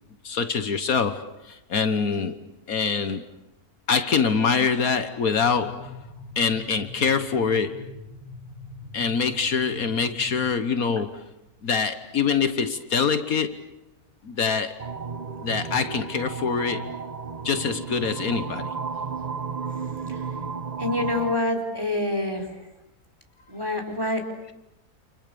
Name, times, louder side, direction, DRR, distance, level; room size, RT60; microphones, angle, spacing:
voice 1, 0.2-2.4 2.7-3.3 3.9-6.1 6.3-7.9 8.9-11.2 11.6-13.6 14.2-14.9 15.4-17.1 17.4-18.8, left 5 dB, 65° left, 1.6 m, -25 dB
sound 1, 5.4-10.5, left 1 dB, 30° left, 4.2 m, -43 dB
sound 2, 14.8-21.4, right 5 dB, 30° right, 1.1 m, -33 dB
voice 2, 20.8-22.6 23.5-24.3, left 2 dB, 15° right, 4.3 m, -26 dB
29.5 x 28.0 x 6.9 m
omnidirectional pair, 1.6 m